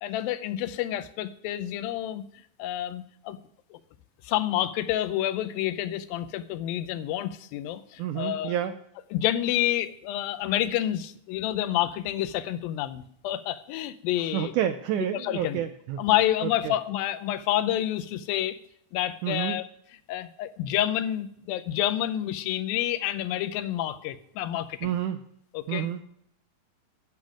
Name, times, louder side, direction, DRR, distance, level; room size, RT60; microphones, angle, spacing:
voice 1, 0.0-2.2 2.6-3.4 4.2-8.5 9.1-14.5 15.1-15.6 16.0-18.6 18.9-19.7 20.1-24.9 25.5-25.9, left 12 dB, 85° left, 12 dB, 2.4 m, -28 dB
voice 2, 8.0-8.7 14.3-16.1 16.4-16.7 19.2-19.6 24.8-25.2 25.7-26.0, right 11 dB, 85° right, 9 dB, 1.8 m, -29 dB
10.5 x 8.1 x 4.8 m, 0.72 s
omnidirectional pair, 4.1 m